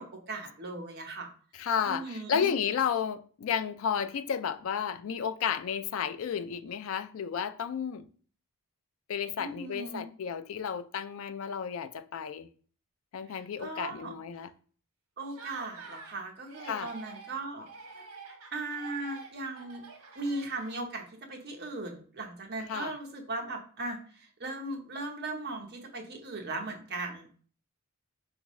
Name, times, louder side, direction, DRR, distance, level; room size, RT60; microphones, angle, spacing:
voice 1, 0.0-1.3 1.8-2.5 9.4-10.1 13.3-14.1 15.2-17.7 18.0-18.1 18.5-19.8 20.1-21.0 21.3-27.3, right 2 dB, 45° right, 0.9 m, -38 dB
voice 2, 1.5-8.1 9.1-12.5 13.1-14.5 16.6-16.9 22.7-22.9, left 7 dB, 60° left, 0.3 m, -32 dB
Laughter, 15.2-16.2 16.5-17.4 17.6-21.0, right 4 dB, 75° right, 1.0 m, -47 dB
4.4 x 3.5 x 3.1 m
head